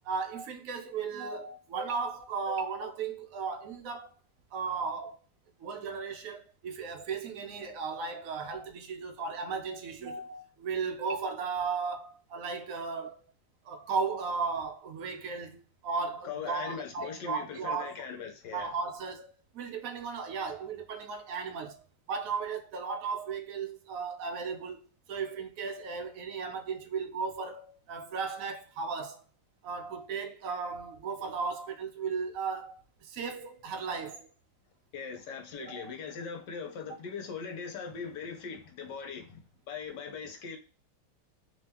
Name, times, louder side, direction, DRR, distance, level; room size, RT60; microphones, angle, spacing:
voice 1, 0.0-4.1 4.5-5.2 5.6-13.2 13.6-17.9 18.5-21.8 22.1-24.8 25.1-29.2 29.6-34.3 35.6-35.9, right 5 dB, 80° right, 0.7 m, -35 dB
voice 2, 16.2-18.7 34.9-39.4 39.7-40.6, left 6 dB, 65° left, 1.4 m, -40 dB
3.3 x 2.9 x 3.5 m
omnidirectional pair, 2.3 m